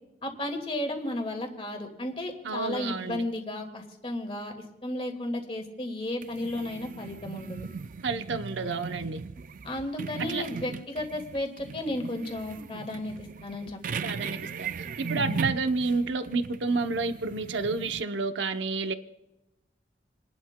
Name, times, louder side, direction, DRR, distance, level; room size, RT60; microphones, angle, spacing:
voice 1, 0.2-4.5 4.8-7.7 9.6-13.8 15.1-15.5, left 1 dB, 30° left, 2.0 m, -34 dB
voice 2, 2.4-3.3 8.0-9.2 10.3-10.4 14.0-14.7 15.0-18.9, right 4 dB, 85° right, 0.7 m, -30 dB
sound 1, 6.2-18.0, right 5 dB, 45° right, 0.4 m, -38 dB
29.5 x 11.5 x 2.2 m
head